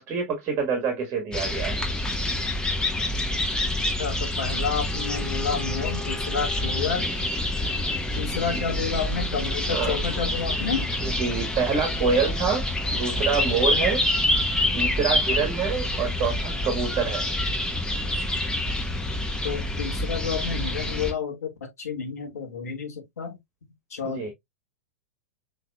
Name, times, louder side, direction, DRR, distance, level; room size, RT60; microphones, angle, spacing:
voice 1, 0.0-1.8 9.7-10.0 11.0-12.6 12.9-14.0 14.7-17.2 24.1-24.3, right 5 dB, 30° right, 1.4 m, -26 dB
sound 1, 1.3-21.1, left 1 dB, 10° left, 1.0 m, -27 dB
voice 2, 4.0-7.1 8.1-10.9 19.4-23.4 23.9-24.3, left 6 dB, 75° left, 1.3 m, -30 dB
Bowed string instrument, 4.8-9.6, left 6 dB, 25° left, 1.8 m, -44 dB
5.7 x 3.2 x 2.2 m
figure-of-eight pair, 100°, 8 cm